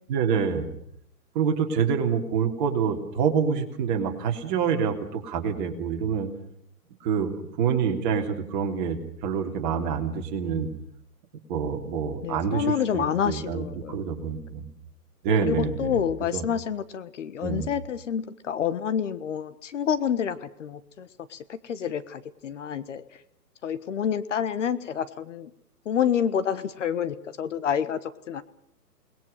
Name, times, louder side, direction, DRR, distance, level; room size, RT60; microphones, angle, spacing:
voice 1, 0.1-0.7 1.3-6.3 7.0-10.7 11.5-14.7 15.2-16.1 16.3-16.4 17.4-17.7, right 6 dB, 30° right, 2 dB, 3.4 m, -26 dB
voice 2, 12.2-14.0 15.4-23.0 23.6-25.5 25.8-28.4, left 8 dB, 50° left, 14 dB, 1.4 m, -28 dB
29.5 x 20.5 x 6.7 m, 0.70 s
hypercardioid pair, 150°, 48 cm